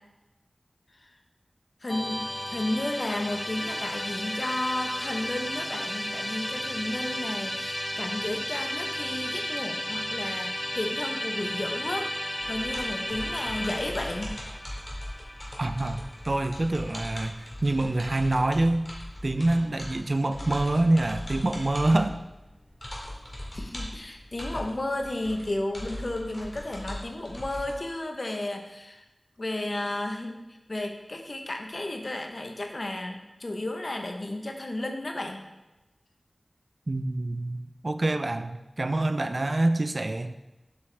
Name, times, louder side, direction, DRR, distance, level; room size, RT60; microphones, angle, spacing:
voice 1, 1.8-12.1 12.5-14.4 23.5-29.0 29.4-30.4 30.7-35.5, left 1 dB, 55° left, 3 dB, 0.9 m, -33 dB
Musical instrument, 1.9-17.1, left 1 dB, 15° left, 0.4 m, -34 dB
sound 1, 12.4-27.8, left 1 dB, 35° left, 2.1 m, -40 dB
voice 2, 15.6-18.9 19.2-22.2 36.9-40.4, right 2 dB, 50° right, 9 dB, 0.4 m, -26 dB
7.8 x 5.9 x 3.4 m, 1.0 s
wide cardioid pair, 60°, 0 cm